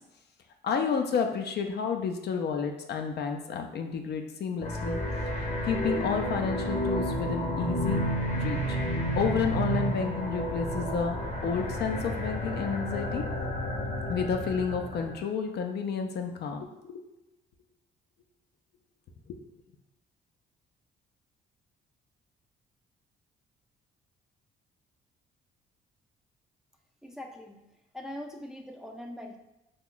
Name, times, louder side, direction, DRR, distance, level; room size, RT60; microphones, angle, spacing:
voice 1, 0.6-5.0 5.6-8.0 8.4-8.8 9.2-11.2 11.4-13.2 14.1-17.0 19.3-19.4, left 6 dB, 60° left, 5 dB, 0.5 m, -30 dB
sound 1, 4.6-15.2, equal, 35° left, 0.9 m, -31 dB
voice 2, 27.0-27.6 27.9-29.4, left 1 dB, 5° right, 2 dB, 0.4 m, -41 dB
2.9 x 2.2 x 3.8 m, 0.94 s
cardioid pair, 85°, 19 cm